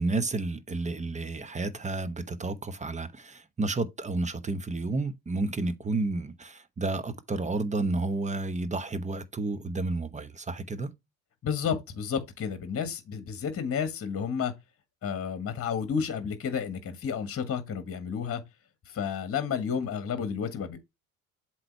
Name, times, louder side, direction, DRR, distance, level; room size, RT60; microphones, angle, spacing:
voice 1, 0.0-10.9, right 3 dB, 15° right, 0.9 m, -31 dB
voice 2, 11.4-14.5 15.0-18.4 18.9-20.8, left 7 dB, 30° left, 1.5 m, -31 dB
7.7 x 3.1 x 4.6 m
hypercardioid pair, 65°, 42 cm